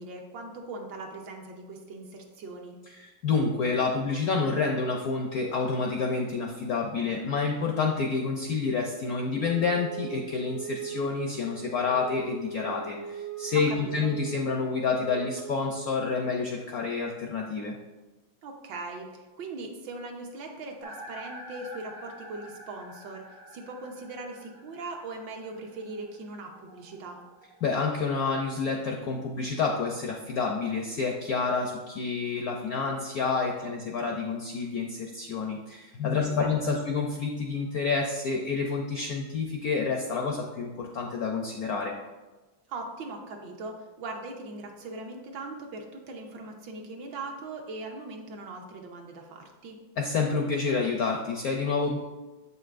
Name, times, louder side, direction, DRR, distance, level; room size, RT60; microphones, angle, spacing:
voice 1, 0.0-2.8 13.5-14.1 18.4-27.2 36.1-36.9 42.7-49.8, right 3 dB, 70° right, 2 dB, 1.4 m, -40 dB
voice 2, 2.9-17.7 27.6-41.9 50.0-52.0, left 4 dB, 75° left, 1 dB, 0.8 m, -28 dB
Wind instrument woodwind instrument, 9.4-16.2, right 7 dB, 90° right, 1.8 m, -40 dB
sound 1, 20.8-28.8, right 1 dB, 45° right, 0.7 m, -48 dB
7.7 x 5.6 x 2.5 m, 1.2 s
omnidirectional pair, 2.2 m